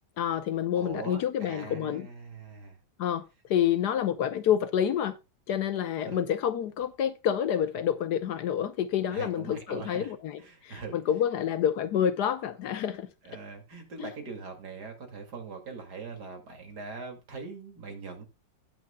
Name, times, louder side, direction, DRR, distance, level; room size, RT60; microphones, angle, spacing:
voice 1, 0.2-2.1 3.0-3.2 3.5-5.1 5.5-13.1 14.0-14.1, left 9 dB, 70° left, 1.3 m, -28 dB
voice 2, 0.7-2.8 6.0-6.3 9.1-10.1 10.4-11.0 13.2-18.3, right 4 dB, 60° right, 2.9 m, -42 dB
18.5 x 6.2 x 2.2 m
omnidirectional pair, 2.0 m